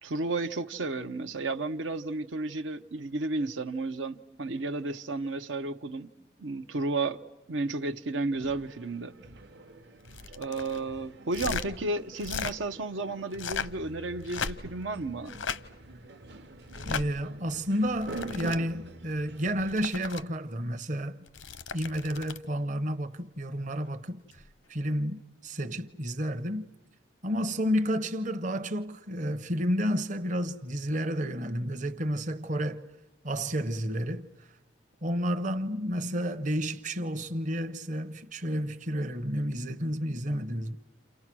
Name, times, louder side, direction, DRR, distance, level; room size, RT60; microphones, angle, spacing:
voice 1, 0.0-6.1 6.4-7.2 7.5-9.1 10.4-15.3, right 3 dB, 80° right, 0.9 m, -32 dB
sound 1, 8.3-19.7, right 2 dB, 60° right, 1.1 m, -46 dB
sound 2, 10.0-10.8 11.3-11.7 12.2-12.6 13.3-13.8 14.2-14.8 15.3-15.6 16.7-17.1 17.9-18.6 19.5-20.2 21.3-22.5 24.3-24.5, left 6 dB, 90° left, 0.9 m, -36 dB
voice 2, 16.8-21.2 21.7-24.4 24.7-26.6 27.2-32.8 33.2-34.5 35.0-40.8, equal, 40° right, 0.9 m, -31 dB
29.0 x 28.5 x 6.2 m
head